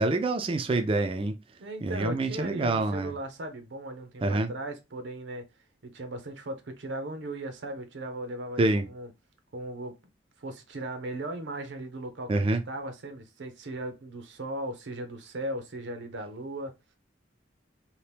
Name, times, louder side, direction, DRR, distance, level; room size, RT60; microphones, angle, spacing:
voice 1, 0.0-1.4 1.8-3.1 4.2-4.5 8.6-8.8 12.3-12.6, right 2 dB, 30° right, 0.3 m, -26 dB
voice 2, 1.6-5.5 5.8-9.1 9.5-10.0 10.4-16.7, right 1 dB, 85° right, 0.7 m, -37 dB
2.8 x 2.1 x 3.2 m
head